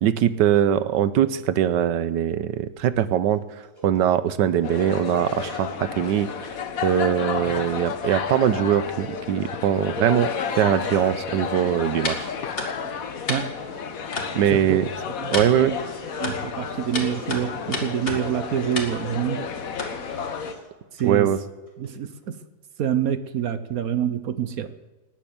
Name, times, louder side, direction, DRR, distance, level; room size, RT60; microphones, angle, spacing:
voice 1, 0.0-3.4 3.8-6.3 6.8-12.3 14.3-14.9 15.3-15.8 21.0-21.4, right 10 dB, 80° right, 14 dB, 1.4 m, -22 dB
sound 1, 3.0-3.1 3.3-3.4 3.6-4.2 4.4-4.7 4.9-5.7 5.9-6.0 6.3-6.8 7.1-8.7 8.9-9.2 9.4-9.5 9.8-11.1 11.4-12.2 12.6-13.8 14.0-14.1 14.4-16.5 16.8-17.7 18.0-20.7 21.0-21.1 21.3-21.9 22.2-22.3, right 1 dB, 20° right, 3.6 m, -48 dB
sound 2, 4.6-20.5, left 6 dB, 55° left, 1.4 m, -32 dB
sound 3, 11.4-20.3, left 2 dB, 30° left, 2.4 m, -34 dB
voice 2, 14.4-14.8 15.2-15.8 16.2-19.5 20.9-21.3 21.8-22.4 22.8-24.7, right 9 dB, 60° right, 11 dB, 1.2 m, -27 dB
19.5 x 9.1 x 7.0 m, 1.2 s
omnidirectional pair, 1.9 m